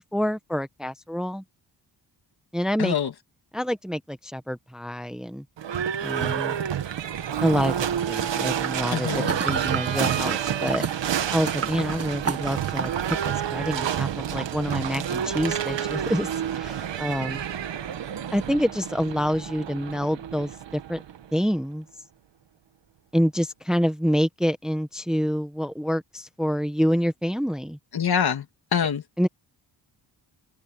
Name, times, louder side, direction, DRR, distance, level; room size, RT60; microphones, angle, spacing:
voice 1, 0.0-1.4 2.5-3.0 3.5-5.4 6.0-6.6 7.4-10.8 11.3-17.4 18.3-21.0 21.3-21.8 23.1-27.8 29.2-29.3, equal, ahead, 1.0 m, -27 dB
voice 2, 2.8-3.1 8.9-9.3 27.9-28.4 28.7-29.0, left 7 dB, 60° left, 2.1 m, -24 dB
Livestock farm animals working animals / Bell, 5.6-21.4, right 9 dB, 80° right, 1.8 m, -29 dB
sound 1, 8.6-13.3 13.6-13.7, right 5 dB, 35° right, 1.7 m, -32 dB
open air
wide cardioid pair, 140°, 43 cm